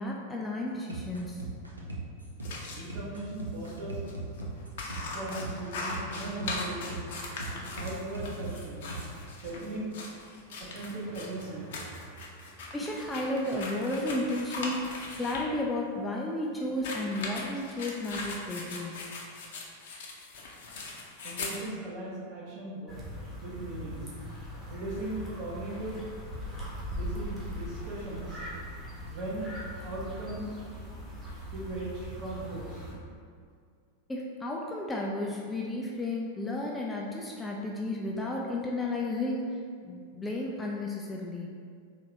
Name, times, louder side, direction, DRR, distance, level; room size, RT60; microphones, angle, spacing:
voice 1, 0.0-1.4 12.7-14.9 15.2-19.0 34.1-39.6 39.8-41.6, left 1 dB, 10° left, -2 dB, 0.4 m, -33 dB
sound 1, 0.9-9.1, right 2 dB, 85° right, 0.5 m, -39 dB
sound 2, 2.4-2.8 3.6-3.8 4.0-4.1 4.4-15.5 16.7-21.6, left 3 dB, 55° left, 0.6 m, -39 dB
voice 2, 2.7-4.0 5.1-6.9 7.5-8.9 9.4-9.9 10.5-12.6 21.2-24.1 24.7-26.0 26.9-28.4 29.0-29.5 29.8-31.0 31.4-32.9, right 2 dB, 45° right, -7 dB, 1.3 m, -38 dB
sound 3, 22.9-32.9, equal, 10° right, 1.2 m, -40 dB
3.9 x 2.7 x 3.4 m, 2.2 s
figure-of-eight pair, 90°, 0 cm